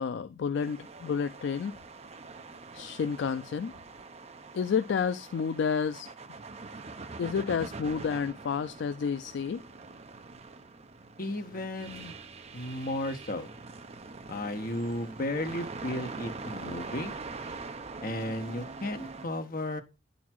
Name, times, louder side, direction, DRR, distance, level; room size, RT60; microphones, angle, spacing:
voice 1, 0.0-1.7 2.7-3.7 4.5-6.1 7.2-9.6, left 6 dB, 70° left, 0.3 m, -30 dB
sound 1, 0.5-19.3, right 3 dB, 35° right, 0.6 m, -44 dB
voice 2, 11.2-12.1 12.5-13.5 14.3-17.2 18.0-19.8, left 1 dB, 50° left, 1.2 m, -34 dB
9.3 x 4.0 x 4.5 m
head